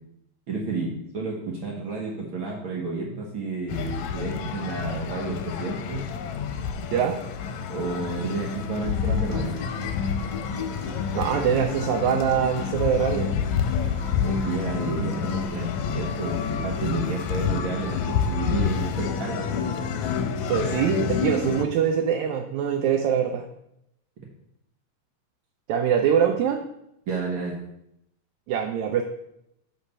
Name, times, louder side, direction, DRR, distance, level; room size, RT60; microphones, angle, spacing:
voice 1, 0.5-6.0 7.7-9.6 14.2-19.5 27.1-27.6, right 3 dB, 60° right, -2 dB, 1.5 m, -31 dB
sound 1, 3.7-21.6, left 7 dB, 90° left, 2.0 m, -28 dB
sound 2, 8.8-13.1, left 4 dB, 25° left, 0.9 m, -39 dB
voice 2, 11.1-13.3 20.5-23.5 25.7-26.6 28.5-29.0, right 8 dB, 80° right, 4 dB, 1.9 m, -23 dB
7.5 x 4.1 x 5.3 m, 0.79 s
omnidirectional pair, 3.3 m